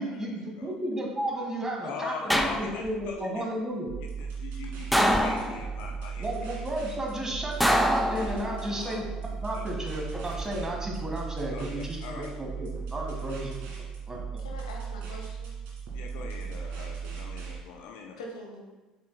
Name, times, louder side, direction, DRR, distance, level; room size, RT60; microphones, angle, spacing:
voice 1, 0.0-3.9 6.2-9.0 9.4-12.0 12.4-13.5 14.1-14.4, right 1 dB, 15° right, 0 dB, 1.6 m, -33 dB
voice 2, 1.8-3.4 4.2-6.3 8.8-9.0 9.5-9.6 11.5-11.6 12.0-12.3 15.9-18.2, left 5 dB, 55° left, 1 dB, 0.7 m, -41 dB
sound 1, 2.3-3.1 4.9-5.9 7.6-8.7 10.1-10.7, equal, ahead, 0.5 m, -25 dB
sound 2, 3.9-17.6, right 6 dB, 60° right, 1.9 m, -37 dB
voice 3, 14.4-15.5 18.2-18.6, left 1 dB, 70° left, 0 dB, 1.1 m, -43 dB
7.7 x 6.9 x 2.2 m, 1.2 s
figure-of-eight pair, 60°, 4 cm